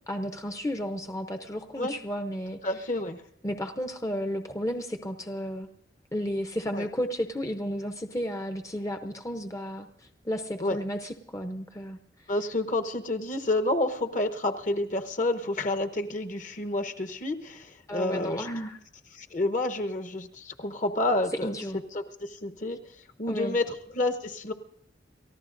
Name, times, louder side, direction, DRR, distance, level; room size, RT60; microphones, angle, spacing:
voice 1, 0.1-2.8 3.4-5.7 6.1-12.3 17.9-18.8 21.4-21.8 23.3-23.6, equal, 20° left, 6 dB, 0.6 m, -33 dB
voice 2, 2.6-3.2 6.7-6.8 10.6-10.8 12.3-18.5 19.1-21.5 21.9-22.9 23.2-24.5, left 2 dB, 45° left, 7 dB, 1.0 m, -29 dB
29.5 x 14.5 x 2.6 m, 0.75 s
head